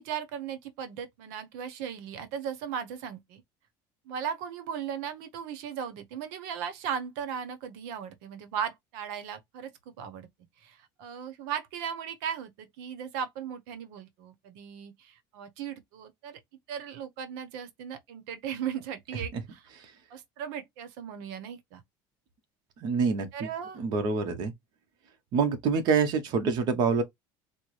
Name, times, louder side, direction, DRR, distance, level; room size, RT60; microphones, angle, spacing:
voice 1, 0.0-3.4 4.1-10.3 10.6-16.4 16.7-19.7 20.1-21.8 23.3-23.8, right 8 dB, 85° right, 0.8 m, -37 dB
voice 2, 22.8-23.5 23.8-24.5 25.3-27.0, right 5 dB, 45° right, 0.9 m, -26 dB
4.4 x 2.1 x 3.1 m
cardioid pair, 175°, 10 cm